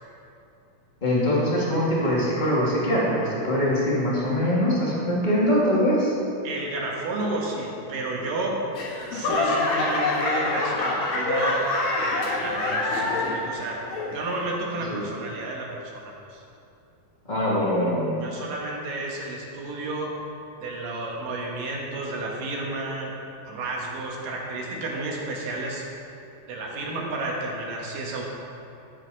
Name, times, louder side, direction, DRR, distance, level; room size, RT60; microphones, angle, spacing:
voice 1, 1.0-6.1 14.9-15.0 17.3-18.1, equal, 20° left, -6 dB, 1.2 m, -23 dB
voice 2, 6.4-8.6 9.1-11.7 12.0-13.8 14.1-15.7 15.9-16.4 18.2-20.2 20.6-23.1 23.4-25.8 26.5-28.3, right 2 dB, 75° right, -2 dB, 3.1 m, -31 dB
Laughter / Clapping / Crowd, 8.7-13.5 13.9-14.4 15.0-15.1, left 2 dB, 60° left, 2.4 m, -25 dB
13.5 x 7.9 x 4.0 m, 2.8 s
omnidirectional pair, 4.0 m